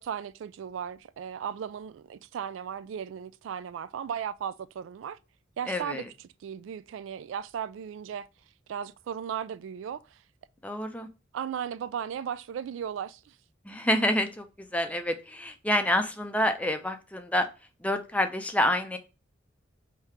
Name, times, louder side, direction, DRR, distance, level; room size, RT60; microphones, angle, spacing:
voice 1, 0.0-5.2 5.6-6.1 6.4-8.3 8.7-10.2 11.3-13.4, right 8 dB, 80° right, 0.3 m, -36 dB
voice 2, 5.7-6.1 10.6-11.1 13.7-14.5 14.7-17.5 17.8-19.0, left 1 dB, 5° left, 0.5 m, -27 dB
3.5 x 2.8 x 4.6 m
head